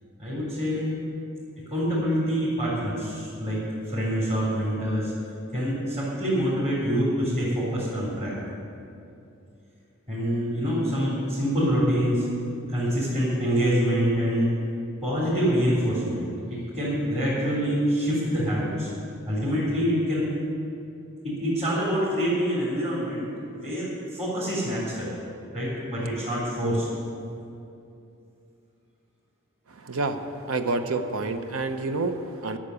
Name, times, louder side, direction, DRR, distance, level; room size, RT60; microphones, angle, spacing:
voice 1, 0.2-1.0 1.7-5.1 5.5-8.3 10.1-12.3 12.7-14.5 15.0-18.9 19.3-20.3 21.2-25.1 25.5-26.9, equal, 35° right, -9 dB, 3.6 m, -26 dB
voice 2, 29.8-30.2 30.5-32.6, right 3 dB, 75° right, 8 dB, 0.8 m, -28 dB
11.5 x 7.4 x 9.8 m, 2.6 s
head